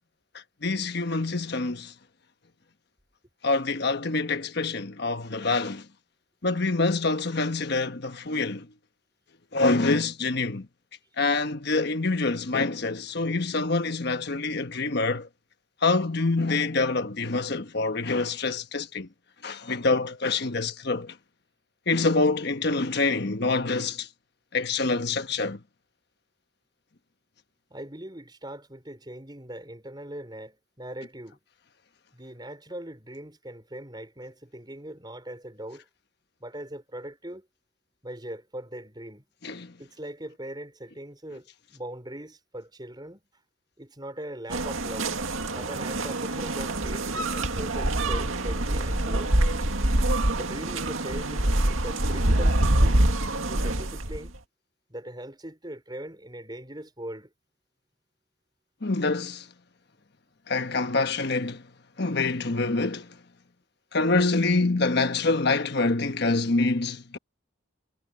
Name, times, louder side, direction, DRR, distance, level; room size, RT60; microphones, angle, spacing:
voice 1, 0.6-1.9 3.4-5.8 6.4-8.7 9.5-10.7 11.2-15.3 15.8-19.1 19.4-21.1 21.9-24.1 24.5-25.6 39.4-39.7 58.8-59.4 60.5-61.6 62.0-63.1 63.9-67.2, left 3 dB, 55° left, 1.2 m, -26 dB
voice 2, 27.7-31.4 32.1-35.9 36.4-37.5 38.0-39.2 39.8-43.2 43.8-45.1 45.5-49.3 50.3-53.0 53.5-54.3 54.9-57.3, right 1 dB, 20° right, 5.6 m, -40 dB
sound 1, 44.5-54.4, right 1 dB, 90° right, 2.2 m, -25 dB
head